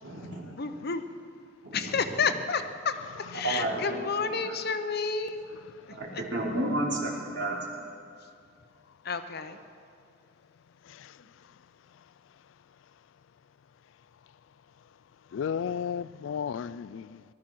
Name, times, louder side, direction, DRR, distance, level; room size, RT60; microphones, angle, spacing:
voice 1, 0.0-0.5 1.6-2.3 3.4-4.6 5.9-7.6, right 1 dB, 65° right, 3.1 m, -32 dB
voice 2, 0.6-1.0 1.7-2.9 3.3-5.4 9.0-9.6, left 5 dB, 55° left, 0.8 m, -30 dB
voice 3, 3.1-3.4 5.5-6.0 10.8-11.2 15.3-17.2, left 7 dB, 70° left, 0.3 m, -35 dB
19.0 x 12.5 x 6.0 m
head